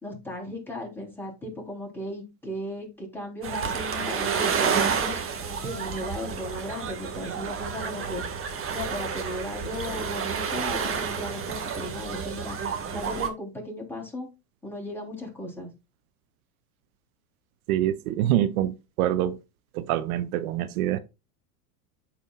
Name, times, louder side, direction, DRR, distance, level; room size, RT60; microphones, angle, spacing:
voice 1, 0.0-5.2 5.6-8.2 8.7-12.6 12.9-14.3 14.6-15.7, left 1 dB, 5° left, 3.4 m, -36 dB
sound 1, 3.4-13.3, right 6 dB, 30° right, 1.8 m, -30 dB
voice 2, 17.7-19.4 19.7-21.0, right 12 dB, 65° right, 0.7 m, -25 dB
12.5 x 4.3 x 2.3 m
hypercardioid pair, 105°, 46 cm